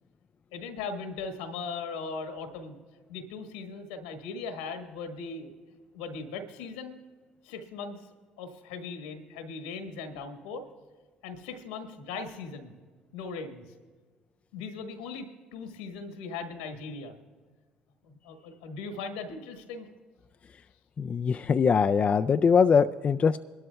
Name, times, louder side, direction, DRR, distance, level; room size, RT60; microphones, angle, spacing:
voice 1, 0.5-2.8 3.1-5.5 5.9-7.0 7.4-8.1 8.4-10.7 11.2-12.7 13.1-13.7 14.5-17.2 18.0-19.9, left 4 dB, 85° left, 6 dB, 1.5 m, -39 dB
voice 2, 21.0-23.4, left 6 dB, 35° left, 10 dB, 0.3 m, -22 dB
22.5 x 12.5 x 2.3 m, 1.5 s
hypercardioid pair, 60°, 4 cm